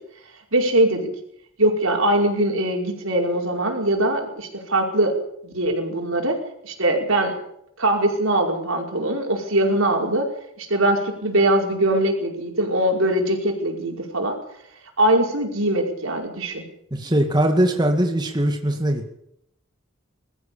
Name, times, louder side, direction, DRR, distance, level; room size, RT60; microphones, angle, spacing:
voice 1, 0.5-1.1 1.6-5.2 5.4-7.4 7.8-10.3 10.6-14.4 15.0-16.6, right 1 dB, 85° right, 2 dB, 5.2 m, -21 dB
voice 2, 16.9-19.1, right 1 dB, 20° right, 4 dB, 2.1 m, -21 dB
22.0 x 14.5 x 8.7 m, 0.73 s
head